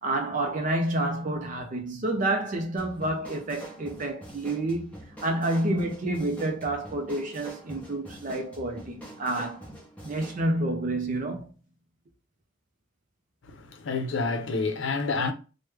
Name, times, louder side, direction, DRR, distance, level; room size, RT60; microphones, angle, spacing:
voice 1, 0.0-9.7 10.0-11.5, right 1 dB, 40° right, 0.5 m, -29 dB
sound 1, 2.8-10.4, right 1 dB, 5° left, 0.9 m, -45 dB
voice 2, 13.5-15.3, left 3 dB, 75° left, 0.6 m, -28 dB
3.2 x 2.1 x 3.2 m
head